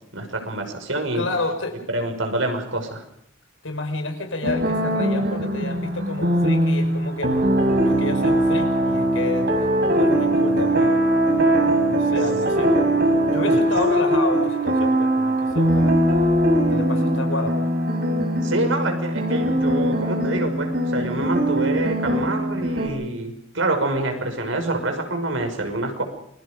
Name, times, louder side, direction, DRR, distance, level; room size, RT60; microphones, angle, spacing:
voice 1, 0.1-1.2 1.9-3.0 18.4-26.0, right 2 dB, 80° right, 5 dB, 5.8 m, -26 dB
voice 2, 1.1-1.8 3.6-7.4 7.8-9.5 10.0-11.0 11.8-12.9 13.3-15.9 16.7-17.6, left 2 dB, 90° left, 5 dB, 5.6 m, -30 dB
sound 1, 4.4-22.9, right 1 dB, 55° right, 4.8 m, -21 dB
28.5 x 23.0 x 5.3 m, 0.75 s
head